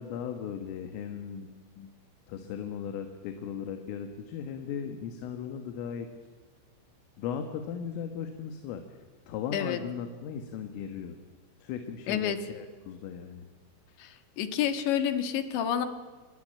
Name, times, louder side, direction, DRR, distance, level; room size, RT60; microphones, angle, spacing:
voice 1, 0.0-1.9 2.3-6.1 7.2-8.8 9.3-11.2 11.6-13.5, left 8 dB, 85° left, 6 dB, 4.1 m, -37 dB
voice 2, 12.1-12.4 14.0-15.9, left 9 dB, 70° left, 9 dB, 3.8 m, -29 dB
26.5 x 21.0 x 8.9 m, 1.4 s
omnidirectional pair, 5.7 m